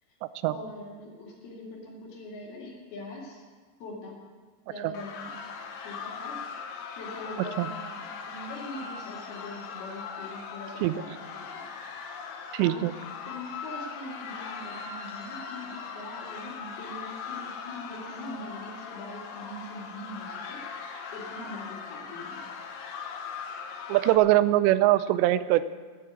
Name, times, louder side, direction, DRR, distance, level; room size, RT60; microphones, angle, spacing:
voice 1, 0.4-3.4 3.8-4.2 4.7-5.3 5.8-6.7 7.0-11.6 12.6-12.9 13.3-20.6 21.1-22.5, left 1 dB, 65° left, -2 dB, 4.1 m, -42 dB
sound 1, 4.9-24.2, left 6 dB, 90° left, 3.5 m, -40 dB
voice 2, 12.5-12.9 23.9-25.6, right 15 dB, 85° right, 14 dB, 2.7 m, -22 dB
13.0 x 8.7 x 8.3 m, 1.4 s
omnidirectional pair, 5.1 m